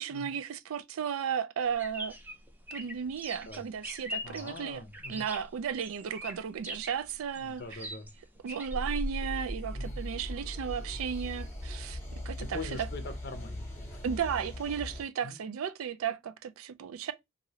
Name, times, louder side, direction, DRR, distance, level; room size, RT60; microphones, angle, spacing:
voice 1, 0.0-2.2 2.7-4.8 5.1-7.8 8.4-12.0 12.3-12.6 14.0-17.1, right 7 dB, 75° right, 0.4 m, -34 dB
sound 1, 1.7-8.7, equal, 10° right, 0.4 m, -43 dB
voice 2, 4.2-5.3 7.4-8.1 9.7-10.0 12.4-14.0 15.2-15.4, left 3 dB, 50° left, 0.5 m, -43 dB
sound 2, 8.7-15.0, equal, 10° left, 0.9 m, -38 dB
2.9 x 2.6 x 2.7 m
head